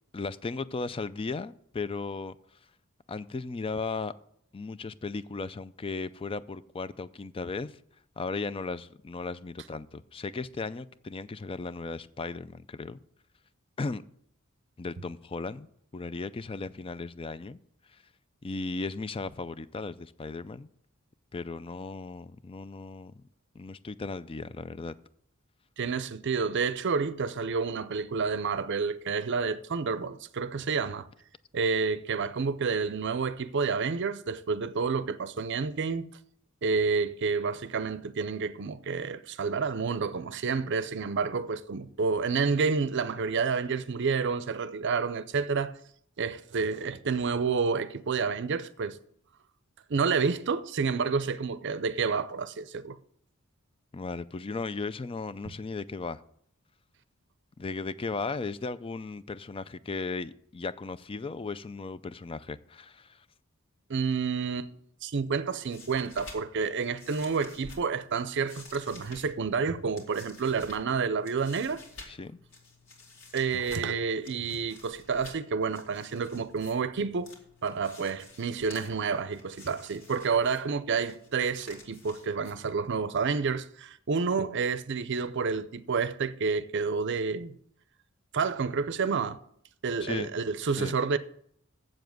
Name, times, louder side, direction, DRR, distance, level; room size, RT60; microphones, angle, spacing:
voice 1, 0.1-2.4 3.1-4.1 4.5-7.8 8.2-13.0 13.8-14.0 14.8-15.7 15.9-17.6 18.4-20.7 21.3-23.1 23.6-25.0 53.9-56.2 57.6-63.2 72.1-72.4 90.0-90.3 90.8-91.0, left 4 dB, 25° left, 0.4 m, -36 dB
voice 2, 25.8-31.1 31.5-36.1 36.6-45.8 46.2-49.0 49.9-53.0 63.9-64.7 65.0-71.8 73.3-77.3 77.6-87.5 88.3-89.4 89.8-91.2, right 5 dB, 60° right, 0.6 m, -29 dB
sound 1, 65.4-83.0, left 2 dB, 70° left, 2.6 m, -52 dB
7.6 x 7.2 x 7.8 m
head